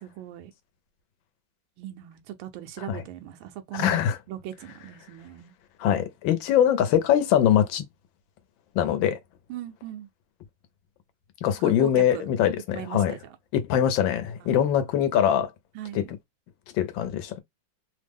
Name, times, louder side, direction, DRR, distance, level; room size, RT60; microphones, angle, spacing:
voice 1, 0.0-0.5 1.8-4.0 4.3-5.5 9.5-10.1 11.6-12.3 12.7-13.4 14.4-14.8 15.7-16.1, right 12 dB, 90° right, 1.4 m, -39 dB
voice 2, 3.7-4.2 5.8-7.9 8.8-9.2 11.4-13.1 13.5-15.5 15.9-16.1 16.8-17.4, left 10 dB, 75° left, 1.3 m, -23 dB
3.5 x 2.0 x 3.4 m
omnidirectional pair, 2.2 m